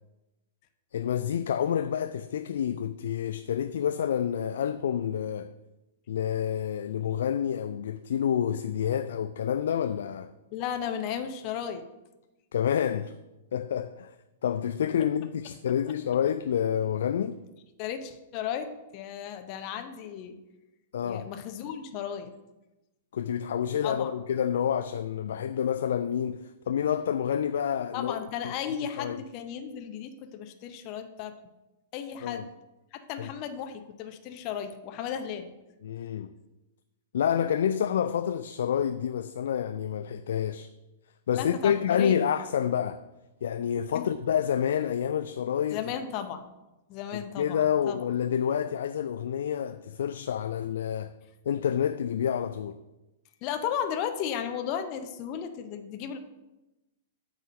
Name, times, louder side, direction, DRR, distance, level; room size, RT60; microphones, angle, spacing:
voice 1, 0.9-5.5 6.1-10.3 12.5-13.1 13.5-14.2 14.4-17.4 20.9-21.3 23.1-28.2 28.4-28.5 29.0-29.2 32.2-32.4 33.2-33.3 35.8-36.3 37.1-40.7 41.3-43.0 43.4-45.9 47.1-51.1 51.5-52.8, left 9 dB, 60° left, 0.3 m, -28 dB
voice 2, 10.5-11.8 17.8-20.4 21.0-22.3 23.8-24.1 27.9-31.3 31.9-32.4 32.9-35.5 41.3-42.2 43.9-44.1 45.7-46.5 46.9-48.0 53.4-56.2, left 8 dB, 40° left, 0.7 m, -35 dB
8.2 x 3.8 x 6.1 m
figure-of-eight pair, 105°, 0 cm